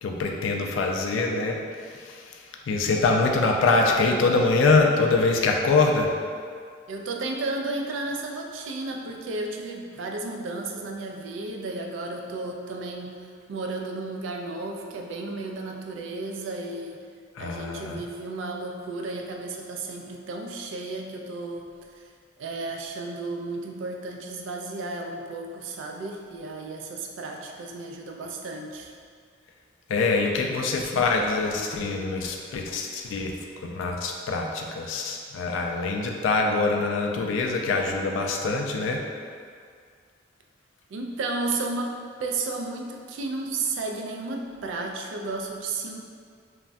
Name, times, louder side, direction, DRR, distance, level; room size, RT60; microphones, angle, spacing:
voice 1, 0.0-6.2 17.3-18.0 29.9-39.1, left 3 dB, 85° left, 2 dB, 0.3 m, -24 dB
voice 2, 6.9-13.1 13.5-17.0 17.4-22.1 22.4-28.9 40.9-46.0, right 3 dB, 80° right, 2 dB, 0.3 m, -33 dB
3.2 x 2.1 x 2.5 m, 2.1 s
head